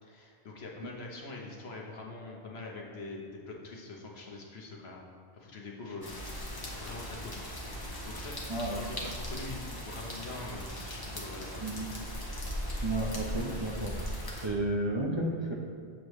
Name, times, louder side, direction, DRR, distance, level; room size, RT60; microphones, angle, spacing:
voice 1, 0.0-5.1 5.3-11.6, left 2 dB, 75° left, -1 dB, 1.3 m, -44 dB
sound 1, 6.0-14.5, equal, 25° left, 0.9 m, -38 dB
voice 2, 8.5-9.0 11.6-11.9 12.8-13.9 14.4-15.5, right 1 dB, 30° right, -3 dB, 0.8 m, -32 dB
7.4 x 6.6 x 3.1 m, 2.3 s
omnidirectional pair, 1.1 m